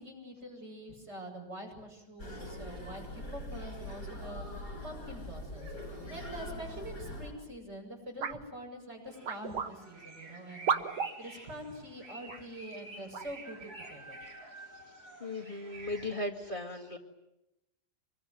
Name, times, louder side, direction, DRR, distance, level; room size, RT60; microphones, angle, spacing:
voice 1, 0.0-4.5 4.8-14.2, right 1 dB, 40° right, 0 dB, 7.9 m, -45 dB
sound 1, 2.2-7.3, left 1 dB, 55° left, 6.8 m, -42 dB
sound 2, 8.2-8.4 9.2-9.7 10.7-11.1 12.3-12.4 13.1-13.3, right 6 dB, 80° right, 1.9 m, -32 dB
sound 3, 9.1-16.2, right 2 dB, 65° right, 4.9 m, -50 dB
voice 2, 15.2-17.0, left 1 dB, 30° left, -1 dB, 2.0 m, -37 dB
26.0 x 22.5 x 9.4 m, 0.92 s
omnidirectional pair, 1.8 m